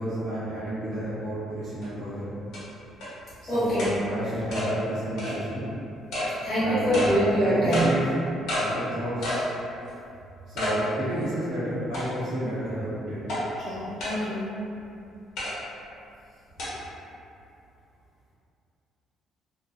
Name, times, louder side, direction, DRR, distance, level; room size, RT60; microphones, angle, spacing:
voice 1, 0.0-2.3 3.4-5.7 6.6-8.1 8.5-9.4 10.5-13.2, right 1 dB, 45° right, -13 dB, 0.7 m, -31 dB
sound 1, 1.8-1.9 2.5-2.6 3.0-3.1 3.8-3.9 4.5-4.7 5.2-5.3 6.1-6.3 6.9-7.1 7.7-7.9 8.5-8.7 9.2-9.5 9.9-10.0 10.6-10.8 11.2-11.3 11.9-12.3 13.3-13.4 14.0-14.2 15.4-15.5 16.6-16.7, left 1 dB, 65° left, 0.9 m, -29 dB
voice 2, 3.5-3.9 6.4-7.9 13.6-14.4, equal, 20° left, -14 dB, 1.1 m, -24 dB
2.4 x 2.1 x 2.4 m, 2.6 s
cardioid pair, 180°, 0 cm